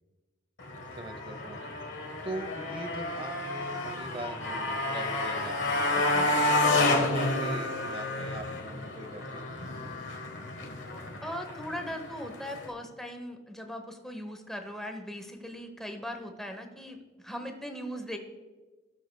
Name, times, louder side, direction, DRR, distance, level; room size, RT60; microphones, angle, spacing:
Motorcycle, 0.6-12.7, left 2 dB, 65° left, 1.3 m, -30 dB
voice 1, 0.9-1.6 2.2-6.3 6.8-9.6, right 1 dB, 30° right, 8 dB, 0.8 m, -41 dB
voice 2, 5.9-6.4 11.2-18.2, equal, ahead, 5 dB, 0.9 m, -39 dB
17.5 x 6.5 x 2.2 m, 1.3 s
head